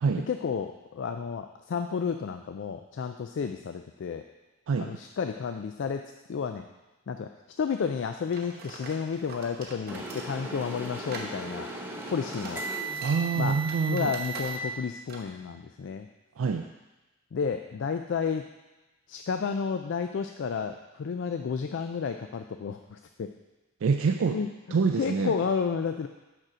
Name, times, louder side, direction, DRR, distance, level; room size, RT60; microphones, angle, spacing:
voice 1, 0.3-4.2 4.8-6.7 7.1-11.7 12.1-12.6 13.4-13.6 13.9-16.1 17.3-18.4 19.1-23.3 24.3-26.1, left 6 dB, 60° left, 7 dB, 0.3 m, -31 dB
sound 1, 8.3-14.8 15.1-15.3, right 3 dB, 45° right, 1.0 m, -44 dB
sound 2, 9.9-14.6, right 3 dB, 10° right, 0.7 m, -36 dB
voice 2, 13.0-14.1 16.4-16.6 23.8-24.4 24.7-25.3, right 5 dB, 70° right, 5 dB, 0.4 m, -26 dB
6.6 x 6.0 x 4.9 m, 1.1 s
head